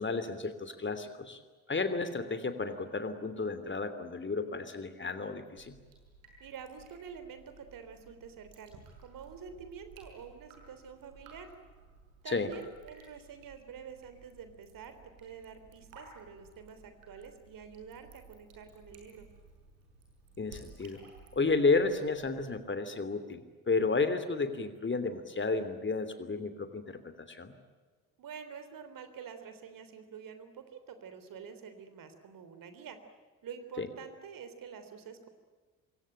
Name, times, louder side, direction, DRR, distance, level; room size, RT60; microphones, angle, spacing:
voice 1, 0.0-1.4 1.7-5.8 12.3-12.5 20.4-21.0 21.3-27.5 33.8-33.9, left 3 dB, 25° left, 11 dB, 3.1 m, -32 dB
Drip, 5.6-22.6, right 3 dB, 75° right, 6.2 m, -57 dB
voice 2, 6.4-11.5 12.2-19.3 28.2-33.0 33.4-35.3, right 7 dB, 50° right, 9 dB, 3.5 m, -47 dB
26.5 x 22.5 x 9.0 m, 1.4 s
figure-of-eight pair, 45°, 42 cm